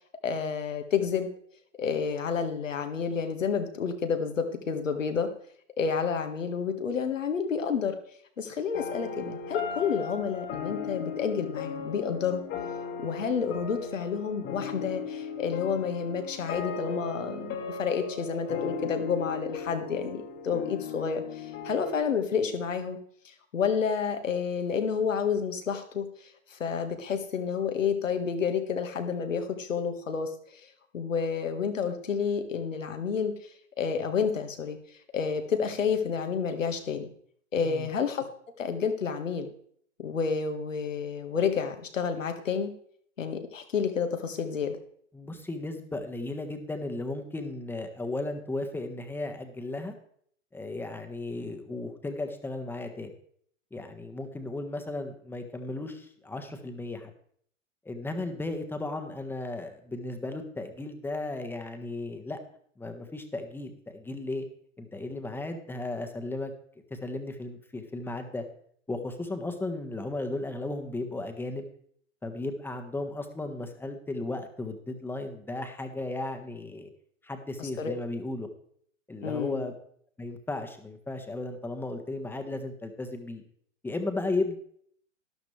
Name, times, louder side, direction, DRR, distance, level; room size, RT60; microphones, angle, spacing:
voice 1, 0.2-1.3 1.8-5.3 5.8-8.0 8.4-12.4 13.0-23.0 23.3-26.1 26.5-30.6 30.9-33.3 33.8-34.8 35.1-37.1 37.5-38.3 38.6-39.5 40.0-42.7 43.2-44.8 77.6-77.9 79.2-79.7, left 6 dB, 80° left, 7 dB, 1.8 m, -30 dB
sound 1, 8.7-22.0, left 6 dB, 30° left, 1.7 m, -37 dB
voice 2, 45.1-49.9 50.5-53.1 53.7-57.1 57.8-62.4 62.8-64.4 64.8-66.5 66.9-68.4 68.9-71.7 72.2-76.9 77.2-78.5 79.1-79.7 80.2-83.4 83.8-84.6, left 2 dB, 5° left, 6 dB, 1.4 m, -35 dB
12.5 x 12.0 x 3.3 m, 0.63 s
hypercardioid pair, 110°, 38 cm